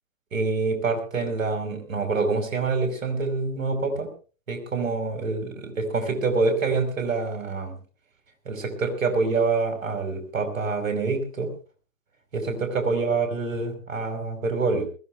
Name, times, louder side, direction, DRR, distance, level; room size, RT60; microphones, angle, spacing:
voice 1, 0.3-4.1 4.5-7.8 8.5-11.5 12.3-14.9, right 4 dB, 70° right, 5 dB, 5.5 m, -26 dB
21.0 x 16.5 x 3.4 m, 0.37 s
figure-of-eight pair, 115°, 40 cm